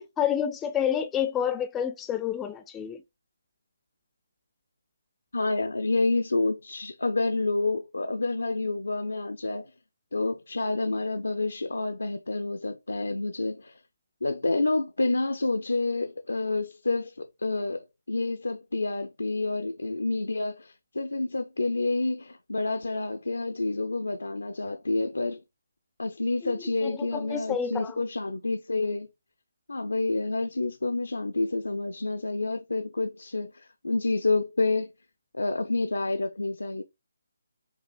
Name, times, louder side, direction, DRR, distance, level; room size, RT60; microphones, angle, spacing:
voice 1, 0.0-3.0 26.4-26.5 26.8-28.0, left 9 dB, 10° left, 0.4 m, -29 dB
voice 2, 5.3-9.7 10.1-13.8 14.2-25.4 26.0-29.1 29.7-34.9 35.3-36.8, left 2 dB, 75° left, 0.4 m, -28 dB
5.3 x 2.4 x 2.2 m
figure-of-eight pair, 150°, 0 cm